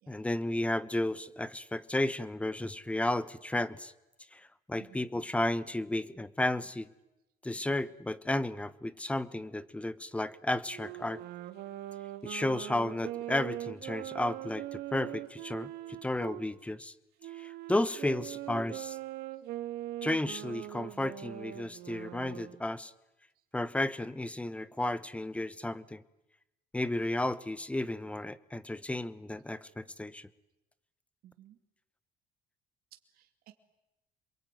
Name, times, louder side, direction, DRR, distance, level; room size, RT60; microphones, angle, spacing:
voice 1, 0.1-3.9 4.3-6.9 7.4-11.2 12.2-16.9 17.3-19.0 20.0-22.9 23.5-26.0 26.7-30.3, left 1 dB, 10° left, 16 dB, 1.0 m, -33 dB
Wind instrument woodwind instrument, 10.6-16.5 17.2-22.6, right 15 dB, 90° right, 2.6 m, -41 dB
voice 2, 31.2-31.6 33.1-33.5, right 12 dB, 65° right, 5 dB, 2.7 m, -57 dB
27.5 x 22.5 x 9.3 m, 0.95 s
cardioid pair, 130°, 16 cm